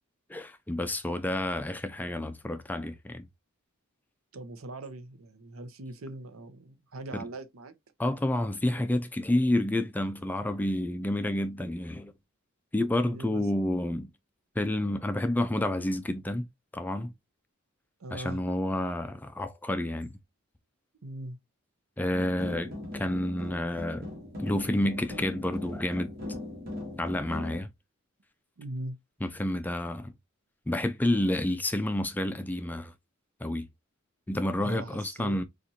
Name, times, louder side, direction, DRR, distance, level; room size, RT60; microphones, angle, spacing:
voice 1, 0.3-3.3 7.1-7.3 8.0-12.1 12.7-14.1 14.6-16.5 16.7-17.1 18.1-20.1 22.0-24.1 24.4-26.1 27.0-27.7 29.2-30.1 30.7-32.9 33.4-33.7 34.3-35.4, left 1 dB, 10° left, 0.3 m, -29 dB
voice 2, 4.3-7.7 13.0-13.5 18.0-18.4 21.0-21.4 28.6-29.0 34.6-35.4, right 1 dB, 80° right, 0.7 m, -40 dB
sound 1, 22.1-27.6, left 1 dB, 45° right, 1.4 m, -39 dB
4.1 x 2.5 x 2.6 m
head